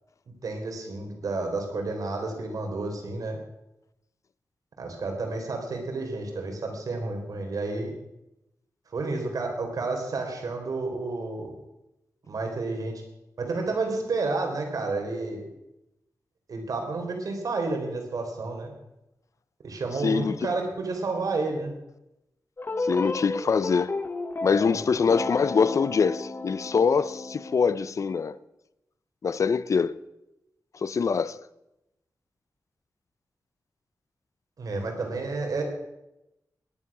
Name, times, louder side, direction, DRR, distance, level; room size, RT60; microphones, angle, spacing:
voice 1, 0.4-3.4 4.8-7.9 8.9-11.5 12.3-13.0 13.4-15.4 16.5-18.7 19.6-21.7 24.6-24.8 34.6-35.6, right 3 dB, 65° right, 3.7 m, -30 dB
voice 2, 20.0-20.3 22.8-24.0 24.4-28.4 29.2-30.0 30.8-31.4, left 5 dB, 55° left, 0.6 m, -24 dB
sound 1, 22.6-27.6, left 2 dB, 30° left, 1.0 m, -33 dB
18.0 x 11.0 x 6.1 m
wide cardioid pair, 160°, 6 cm